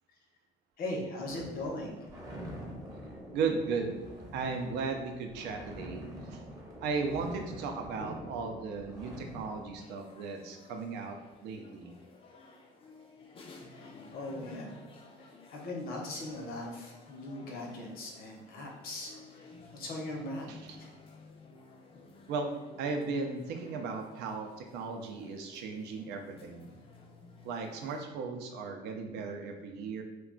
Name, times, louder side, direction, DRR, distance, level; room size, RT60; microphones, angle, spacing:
voice 1, 0.8-1.9 13.7-14.7 15.5-19.1 19.7-20.9, left 1 dB, 60° left, -1 dB, 0.8 m, -39 dB
sound 1, 1.3-9.8, equal, 20° right, 0.7 m, -45 dB
voice 2, 3.3-4.0 4.3-6.4 6.8-11.2 11.4-11.9 20.5-20.8 22.3-22.5 22.8-26.7 27.4-30.0, right 4 dB, 85° right, 4 dB, 0.5 m, -36 dB
sound 2, 9.8-28.0, left 3 dB, 35° left, 0.4 m, -54 dB
2.3 x 2.2 x 3.7 m, 1.1 s
cardioid pair, 110°, 17 cm